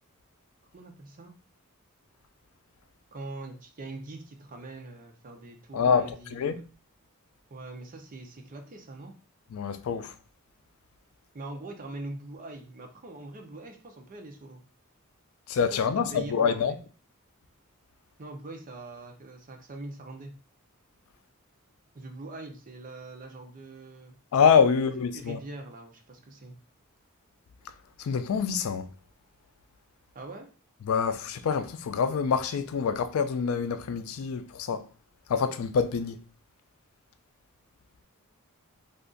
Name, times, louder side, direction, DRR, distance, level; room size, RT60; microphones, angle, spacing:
voice 1, 0.7-1.3 3.1-6.4 7.5-9.1 11.3-14.6 15.9-16.8 18.2-20.3 21.9-24.1 24.7-26.5 30.1-30.5, right 2 dB, 40° right, 0.6 m, -43 dB
voice 2, 5.7-6.6 9.5-10.1 15.5-16.8 24.3-25.4 28.0-28.9 30.8-34.9 35.3-36.2, left 6 dB, 75° left, 0.4 m, -26 dB
2.5 x 2.4 x 3.7 m
head